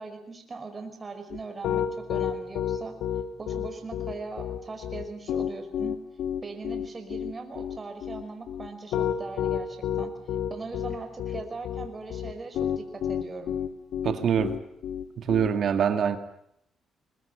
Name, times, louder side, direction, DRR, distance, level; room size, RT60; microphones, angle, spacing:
voice 1, 0.0-2.9 3.4-6.0 6.4-10.1 10.5-13.6, right 3 dB, 30° right, 5.5 m, -40 dB
Piano, 1.3-15.5, left 9 dB, 85° left, 2.2 m, -30 dB
voice 2, 14.0-14.6 15.2-16.2, right 8 dB, 60° right, 2.1 m, -24 dB
22.0 x 21.0 x 10.0 m
cardioid pair, 90°, 0 cm